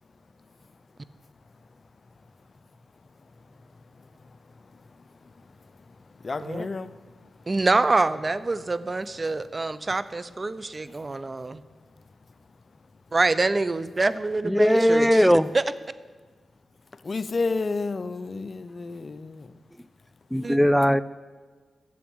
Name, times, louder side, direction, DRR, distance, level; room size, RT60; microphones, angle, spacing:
voice 1, 6.2-6.9 17.0-19.5, left 3 dB, 50° left, 0.7 m, -30 dB
voice 2, 7.5-11.6 13.1-15.7 20.4-20.6, right 3 dB, 35° right, 0.6 m, -26 dB
voice 3, 14.4-15.5 20.3-21.0, equal, ahead, 0.6 m, -19 dB
12.5 x 7.3 x 8.8 m
cardioid pair, 50°, 0 cm